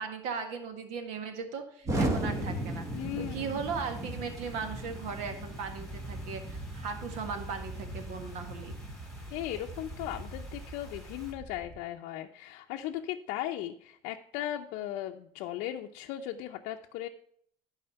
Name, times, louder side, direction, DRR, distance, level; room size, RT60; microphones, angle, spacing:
voice 1, 0.0-2.9 3.2-8.8, right 5 dB, 70° right, 7 dB, 1.7 m, -38 dB
Explosion, 1.8-11.8, right 1 dB, 25° right, 1.3 m, -37 dB
sound 1, 1.9-11.3, left 1 dB, 5° left, 2.7 m, -51 dB
voice 2, 2.9-3.5 9.3-17.1, left 12 dB, 75° left, 2 dB, 0.6 m, -37 dB
11.0 x 4.9 x 5.6 m, 0.63 s
cardioid pair, 145°, 12 cm